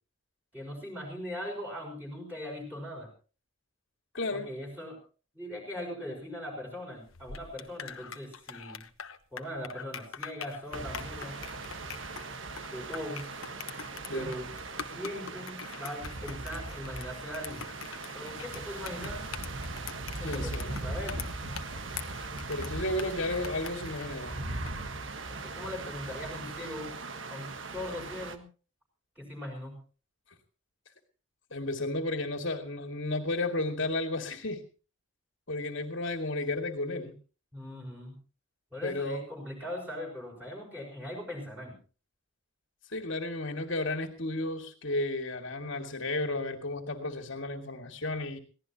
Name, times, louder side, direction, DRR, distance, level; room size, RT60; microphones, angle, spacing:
voice 1, 0.5-3.1 4.3-5.0 5.3-8.9 9.3-11.4 12.7-13.3 14.1-14.5 14.8-17.7 18.1-19.3 20.2-21.3 25.3-26.9 27.3-28.5 29.2-29.8 37.5-38.2 38.7-41.8, left 1 dB, 10° right, -1 dB, 5.7 m, -40 dB
voice 2, 4.1-4.5 14.1-14.3 20.2-20.8 22.5-24.4 31.5-34.6 35.5-37.1 38.8-39.2 42.9-48.4, left 2 dB, 60° left, 5 dB, 2.2 m, -33 dB
sound 1, 7.0-24.8, left 7 dB, 75° left, 1.2 m, -44 dB
sound 2, 10.7-28.4, right 3 dB, 65° right, 1.4 m, -39 dB
22.5 x 17.0 x 2.9 m, 0.35 s
head